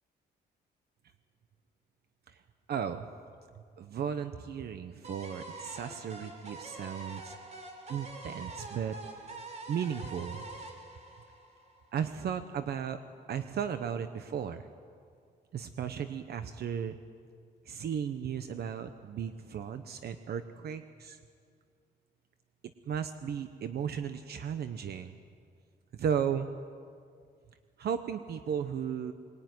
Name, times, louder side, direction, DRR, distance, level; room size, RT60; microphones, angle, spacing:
voice 1, 2.7-3.1 3.8-7.3 7.9-9.0 9.7-10.4 11.9-13.0 13.3-14.7 15.5-17.0 17.6-21.2 22.9-25.2 25.9-26.5 27.8-29.1, right 8 dB, 65° right, 9 dB, 1.0 m, -35 dB
sound 1, 5.0-12.0, right 2 dB, 40° right, 4.0 m, -45 dB
24.0 x 21.0 x 9.6 m, 2.2 s
cardioid pair, 145°, 18 cm